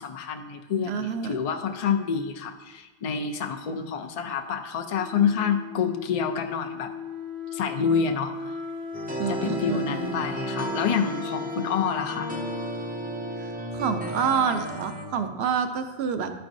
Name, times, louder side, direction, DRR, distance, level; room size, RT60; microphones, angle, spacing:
voice 1, 0.0-6.9 7.5-8.3 9.3-12.3, left 6 dB, 60° left, 4 dB, 0.3 m, -27 dB
voice 2, 0.9-1.4 9.2-10.2 13.7-16.3, right 6 dB, 70° right, 8 dB, 0.8 m, -28 dB
Wind instrument woodwind instrument, 4.9-13.6, left 5 dB, 40° left, 0.8 m, -37 dB
sound 1, 8.9-15.1, right 1 dB, 15° right, 0.4 m, -34 dB
11.5 x 4.5 x 2.6 m, 1.2 s
omnidirectional pair, 1.1 m